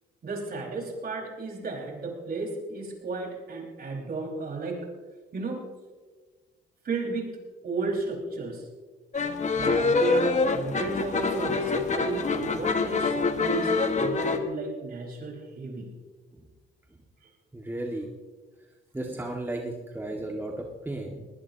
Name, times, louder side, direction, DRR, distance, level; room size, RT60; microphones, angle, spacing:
voice 1, 0.2-4.8 5.3-5.7 6.8-7.3 7.6-8.7 9.5-15.9, right 3 dB, 50° right, 0 dB, 5.0 m, -34 dB
sound 1, 9.1-14.4, left 4 dB, 35° left, 1.5 m, -25 dB
voice 2, 17.5-18.1 18.9-21.3, right 1 dB, 10° right, 0 dB, 1.9 m, -34 dB
20.5 x 19.5 x 2.9 m, 1.4 s
cardioid pair, 90°, 20 cm